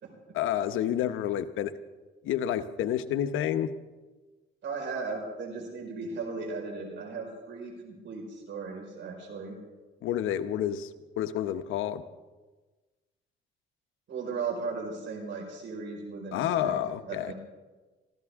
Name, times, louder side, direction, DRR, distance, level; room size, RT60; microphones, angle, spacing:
voice 1, 0.3-1.8 2.2-3.7 10.0-10.9 11.2-12.0 16.3-17.3, left 10 dB, 85° left, 10 dB, 0.9 m, -29 dB
voice 2, 4.6-9.6 14.1-17.3, right 4 dB, 65° right, 2 dB, 4.8 m, -37 dB
24.5 x 15.0 x 3.6 m, 1.3 s
cardioid pair, 90°, 20 cm